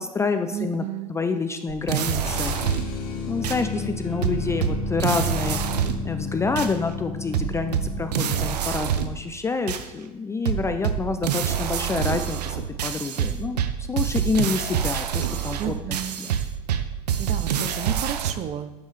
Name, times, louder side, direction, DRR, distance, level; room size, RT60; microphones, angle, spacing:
voice 1, 0.0-2.6 3.3-5.6 6.0-16.4, left 4 dB, 15° left, 8 dB, 0.4 m, -28 dB
voice 2, 0.5-1.1 15.6-16.2 17.2-18.7, right 9 dB, 35° right, 11 dB, 0.5 m, -32 dB
sound 1, 1.7-3.0 3.4-3.6 4.2-6.1 6.6-6.7 7.3-9.2 9.7-9.8 10.4-18.3, right 8 dB, 80° right, 0.6 m, -26 dB
sound 2, 2.2-8.7, left 4 dB, 60° left, 2.1 m, -32 dB
9.2 x 5.4 x 3.2 m, 1.1 s
hypercardioid pair, 95°, 20 cm